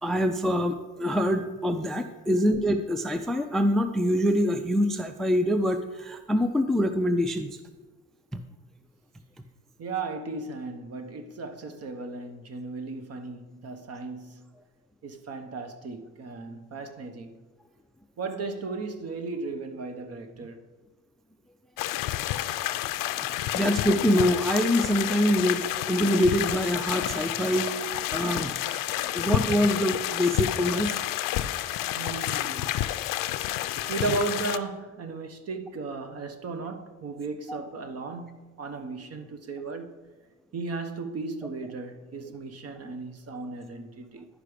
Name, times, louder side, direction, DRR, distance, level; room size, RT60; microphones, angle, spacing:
voice 1, 0.0-7.5 23.2-25.6 25.9-27.7 28.1-30.9, equal, ahead, 0.4 m, -25 dB
voice 2, 9.8-14.5 15.0-17.3 18.2-20.6 31.9-32.7 33.4-33.6 33.9-40.0 40.5-44.3, right 3 dB, 45° right, 1.0 m, -35 dB
sound 1, 21.8-34.6, left 13 dB, 75° left, 0.5 m, -30 dB
11.5 x 4.9 x 5.0 m
cardioid pair, 115°, 33 cm